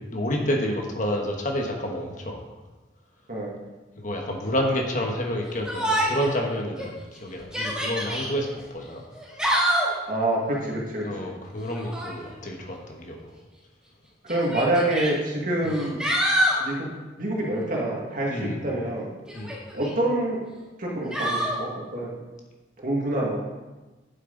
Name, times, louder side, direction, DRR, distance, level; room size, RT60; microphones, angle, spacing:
voice 1, 0.1-2.4 4.0-9.0 11.0-13.3 18.3-18.6 19.3-19.6, equal, 45° left, 1 dB, 1.3 m, -29 dB
Yell, 5.6-6.3 6.8-6.9 7.4-8.3 9.1-10.0 11.7-12.2 13.3-13.4 14.3-15.1 15.7-16.6 19.3-19.9 21.1-21.6, equal, 5° right, 1.7 m, -26 dB
voice 2, 10.1-11.3 14.2-16.0 16.6-16.8 17.2-19.1 19.7-20.4 20.8-22.1 22.8-23.4, right 1 dB, 45° right, -3 dB, 2.0 m, -26 dB
9.2 x 7.8 x 4.0 m, 1.2 s
head